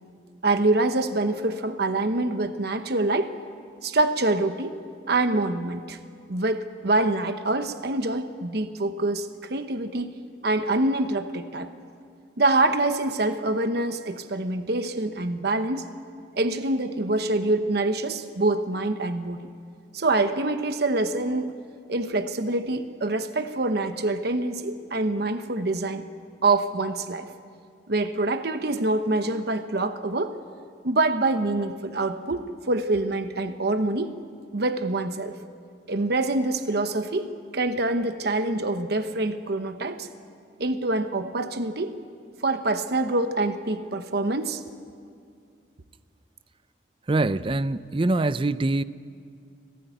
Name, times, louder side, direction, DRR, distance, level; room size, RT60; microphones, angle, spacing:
voice 1, 0.4-3.3 3.8-4.8 5.1-6.0 6.3-10.1 10.4-11.7 12.4-15.9 16.3-19.4 19.9-21.6 21.9-26.0 26.4-27.3 27.9-30.3 30.8-34.2 34.5-35.4 35.9-40.1 40.6-42.0 42.4-44.6, right 2 dB, 60° right, 9 dB, 1.0 m, -25 dB
voice 2, 47.1-48.8, right 2 dB, 30° right, 15 dB, 0.5 m, -24 dB
24.5 x 17.0 x 9.3 m, 2.3 s
head